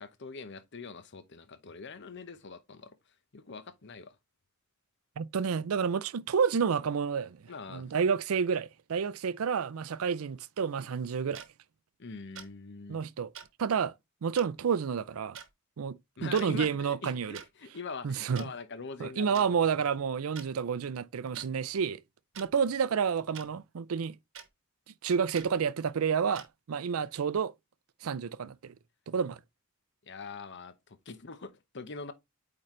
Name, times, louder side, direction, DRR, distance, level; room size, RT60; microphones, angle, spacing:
voice 1, 0.0-3.0 3.3-4.1 7.5-7.8 12.0-13.0 16.2-19.6 30.1-32.1, left 4 dB, 55° left, 0.9 m, -43 dB
voice 2, 5.2-7.4 7.7-11.4 12.9-13.3 13.6-13.9 14.2-15.4 15.8-17.4 18.0-18.4 19.0-22.0 22.4-24.2 24.9-27.5 28.0-28.7 29.1-29.4, right 6 dB, 80° right, 0.5 m, -30 dB
sound 1, 11.3-11.5 12.4-12.5 13.3-13.5 14.4-14.5 15.3-15.5 16.2-16.5 17.3-17.5 18.4-18.5 19.3-19.5 20.4-20.5 21.3-21.5 22.3-22.5 23.3-23.5 24.3-24.5 25.3-25.5 26.3-26.5, right 8 dB, 65° right, 1.1 m, -45 dB
8.6 x 3.9 x 3.1 m
head